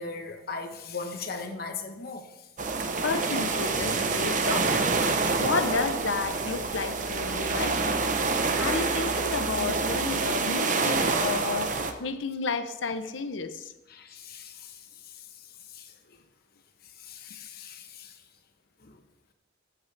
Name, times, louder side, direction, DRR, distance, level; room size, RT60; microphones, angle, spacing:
voice 1, 0.0-2.5 5.2-5.4 13.9-16.2 16.8-18.2 18.8-19.0, left 4 dB, 55° left, 5 dB, 1.1 m, -40 dB
sound 1, 2.6-11.9, right 3 dB, 45° right, 0.8 m, -27 dB
voice 2, 3.0-4.8 5.4-8.0 8.6-13.7, left 4 dB, 85° left, 10 dB, 0.8 m, -31 dB
14.0 x 8.0 x 3.3 m, 0.99 s
head